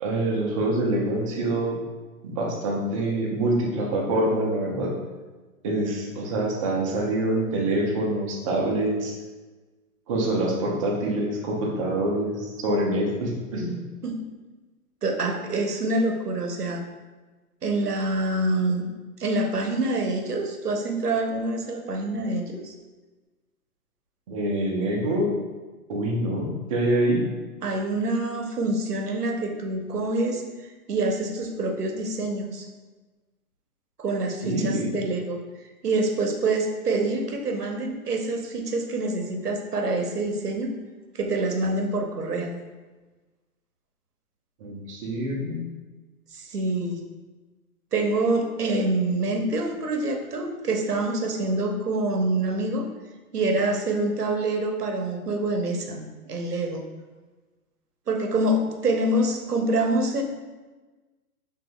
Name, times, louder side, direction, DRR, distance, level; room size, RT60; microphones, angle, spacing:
voice 1, 0.0-1.7 2.2-4.9 5.6-9.1 10.1-13.7 24.3-25.3 25.9-27.2 34.4-34.9 44.6-45.6, right 1 dB, 20° right, -2 dB, 0.6 m, -25 dB
voice 2, 15.0-16.8 17.6-18.9 19.2-22.7 27.6-30.4 30.9-32.7 34.0-35.4 35.8-40.7 41.1-42.6 46.3-47.0 47.9-52.9 53.3-56.8 58.1-60.2, right 2 dB, 85° right, 3 dB, 0.8 m, -26 dB
5.8 x 3.3 x 2.2 m, 1.2 s
figure-of-eight pair, 125°, 45 cm